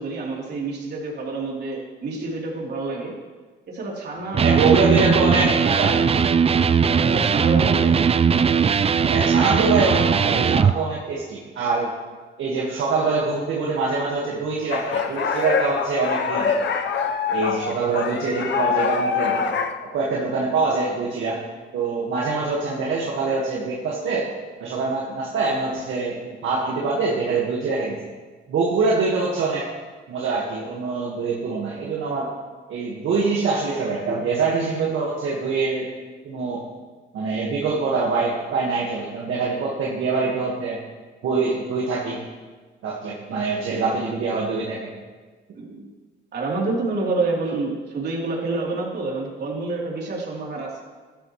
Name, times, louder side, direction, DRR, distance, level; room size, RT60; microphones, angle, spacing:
voice 1, 0.0-3.1 3.7-5.6 6.8-7.9 43.3-43.9 45.5-45.9 46.3-50.8, right 3 dB, 55° right, -4 dB, 3.6 m, -28 dB
Electric guitar, 4.3-10.8, right 6 dB, 30° right, 0.4 m, -19 dB
voice 2, 4.4-6.0 7.8-7.9 9.1-11.9 12.4-16.6 17.3-19.4 19.8-21.4 21.7-24.3 24.6-28.0 28.5-29.7 30.1-32.3 32.7-35.9 36.2-36.7 37.1-40.8 41.2-42.2 42.8-44.9, right 4 dB, 75° right, -4 dB, 1.8 m, -24 dB
sound 1, 14.7-19.7, left 6 dB, 65° left, 1.0 m, -24 dB
14.5 x 12.5 x 3.3 m, 1.4 s
cardioid pair, 90°, 20 cm